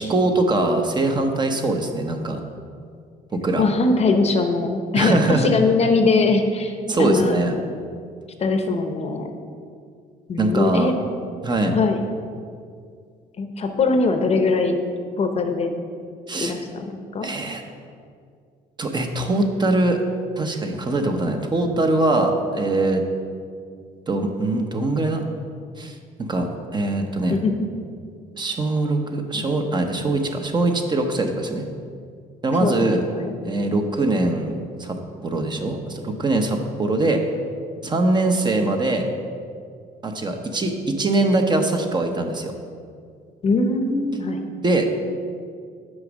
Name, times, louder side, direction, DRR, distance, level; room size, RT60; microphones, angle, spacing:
voice 1, 0.0-2.4 3.3-3.6 5.0-5.5 6.9-7.6 10.4-10.9 11.4-11.8 16.3-16.5 17.2-17.6 18.8-20.0 20.4-23.0 24.1-25.3 25.8-27.4 28.4-31.7 32.4-33.0 33.4-34.5 34.8-37.2 37.8-39.1 40.0-42.5 44.6-45.0, right 2 dB, 25° right, 4 dB, 0.8 m, -22 dB
voice 2, 3.6-7.4 8.4-9.3 10.3-10.9 11.7-12.0 13.4-14.8 15.2-15.7 16.4-17.3 27.3-27.7 32.6-33.3 43.4-44.5, left 3 dB, 40° left, 6 dB, 0.7 m, -21 dB
6.4 x 5.1 x 6.3 m, 2.2 s
cardioid pair, 110°, 17 cm